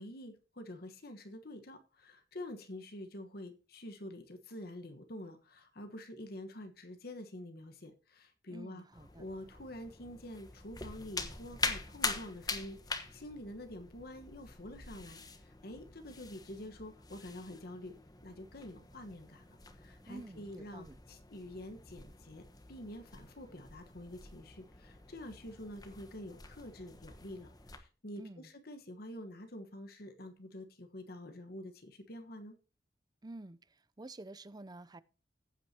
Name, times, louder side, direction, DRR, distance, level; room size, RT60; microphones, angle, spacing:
voice 1, 0.0-32.6, left 1 dB, 60° left, 1.3 m, -47 dB
voice 2, 8.5-9.2 20.1-21.0 28.2-28.5 33.2-33.6 34.0-35.0, right 2 dB, 25° right, 0.6 m, -49 dB
sound 1, 8.9-27.8, left 4 dB, 20° left, 1.2 m, -44 dB
15.0 x 8.8 x 2.9 m
head